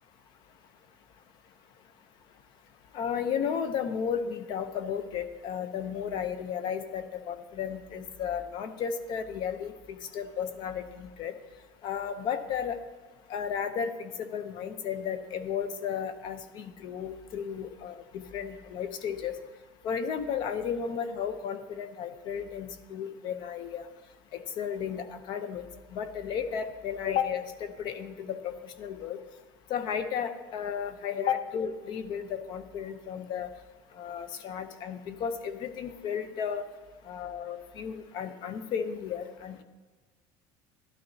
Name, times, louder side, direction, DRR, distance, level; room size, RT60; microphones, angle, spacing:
voice 1, 2.9-11.3 11.8-12.8 13.3-19.4 19.8-23.9 24.3-25.7 25.9-29.2 29.7-33.5 34.0-36.6 37.1-39.6, left 7 dB, 50° left, 10 dB, 0.7 m, -34 dB
13.5 x 11.5 x 2.8 m, 1.3 s
cardioid pair, 155°, 10 cm